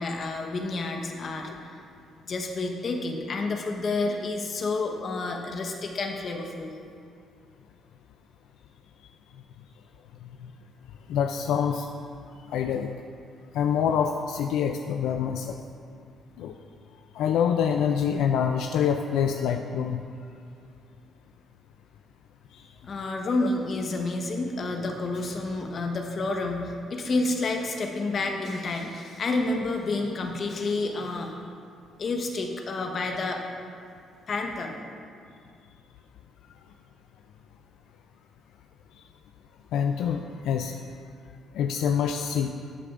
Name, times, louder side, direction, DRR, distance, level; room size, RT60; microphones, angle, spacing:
voice 1, 0.0-1.8 2.2-6.8 22.8-31.4 32.0-33.4 34.3-34.8, left 3 dB, 50° left, 3 dB, 1.1 m, -29 dB
voice 2, 11.1-12.0 12.5-12.9 13.5-15.6 16.4-16.5 17.1-20.0 39.7-40.8 41.5-42.5, left 8 dB, 85° left, 5 dB, 0.3 m, -26 dB
12.5 x 8.3 x 2.5 m, 2.3 s
cardioid pair, 90°, 0 cm